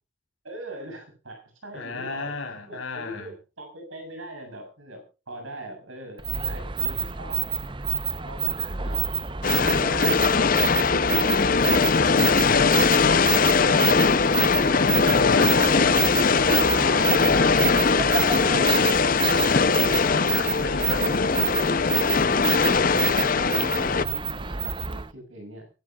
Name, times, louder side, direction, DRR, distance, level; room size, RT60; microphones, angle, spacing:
voice 1, 0.4-2.3 2.7-7.5 8.2-9.0 9.5-10.6 11.1-11.8 22.2-25.7, right 1 dB, 80° right, 6.8 m, -41 dB
voice 2, 1.7-3.3 9.5-10.4 12.2-12.7 15.0-19.0 19.3-21.1, left 3 dB, 75° left, 4.8 m, -33 dB
sound 1, 6.2-25.1, right 7 dB, 25° right, 0.8 m, -29 dB
sound 2, 9.4-24.0, left 5 dB, 45° left, 0.6 m, -21 dB
Splash splatter, 11.5-21.5, right 1 dB, 45° right, 4.0 m, -48 dB
24.0 x 12.0 x 2.4 m
head